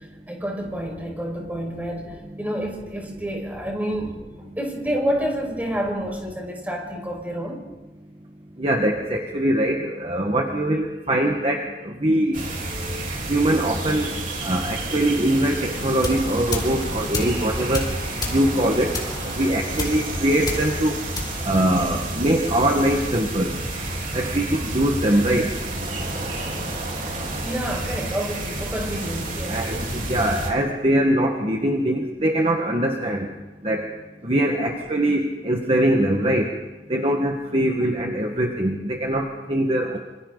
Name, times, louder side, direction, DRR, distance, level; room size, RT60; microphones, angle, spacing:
voice 1, 0.3-7.6 27.4-29.6, equal, 10° right, 0 dB, 5.4 m, -29 dB
voice 2, 8.6-12.4 13.3-14.1 14.4-17.9 18.2-18.9 19.3-21.0 21.4-23.5 24.1-25.5 29.5-33.3 33.6-33.9 34.2-36.5 36.9-40.0, right 1 dB, 35° right, 1 dB, 1.7 m, -22 dB
sound 1, 12.3-30.5, right 2 dB, 50° right, 3.9 m, -30 dB
sound 2, 15.7-22.3, left 2 dB, 25° left, 4.3 m, -33 dB
27.0 x 26.5 x 4.1 m, 1.1 s
head